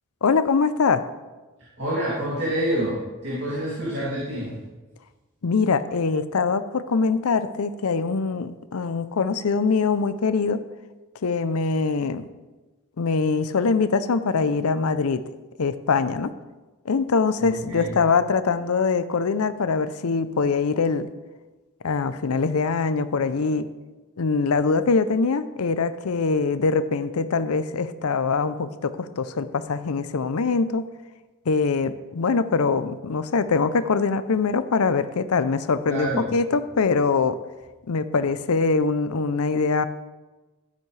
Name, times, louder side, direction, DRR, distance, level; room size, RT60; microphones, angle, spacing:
voice 1, 0.2-1.0 5.4-10.6 11.2-12.3 13.0-15.2 15.6-16.3 16.9-21.1 21.8-23.7 24.2-30.8 31.5-37.4 37.9-39.9, left 4 dB, 80° left, 12 dB, 0.6 m, -23 dB
voice 2, 1.8-4.5 17.4-17.9 35.8-36.2, right 1 dB, 50° right, -8 dB, 2.6 m, -27 dB
13.0 x 8.3 x 3.3 m, 1.2 s
head